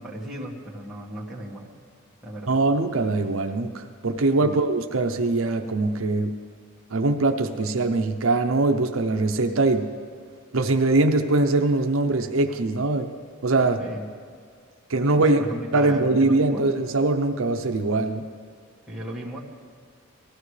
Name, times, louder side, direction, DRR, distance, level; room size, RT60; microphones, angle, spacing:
voice 1, 0.0-1.7 2.2-2.6 4.4-4.6 13.8-14.1 15.2-16.7 18.9-19.4, equal, ahead, -6 dB, 1.9 m, -35 dB
voice 2, 2.5-6.3 6.9-9.9 10.5-13.1 13.4-13.8 14.9-15.4 15.7-18.3, right 2 dB, 70° right, 5 dB, 0.7 m, -22 dB
19.5 x 14.5 x 3.3 m, 2.1 s
head